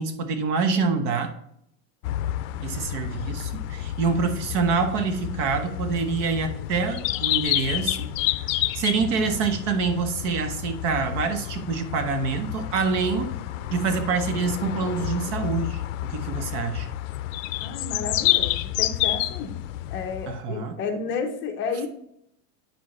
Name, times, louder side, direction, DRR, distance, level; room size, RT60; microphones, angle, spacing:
voice 1, 0.0-1.3 2.6-8.1 8.7-13.4 13.7-16.9 20.3-20.8, right 5 dB, 60° right, 8 dB, 1.0 m, -26 dB
sound 1, 2.0-20.4, left 14 dB, 70° left, 0.5 m, -29 dB
voice 2, 17.6-19.6 19.9-21.9, left 5 dB, 30° left, 3 dB, 0.8 m, -31 dB
8.9 x 4.9 x 3.1 m, 0.72 s
supercardioid pair, 170°, 41 cm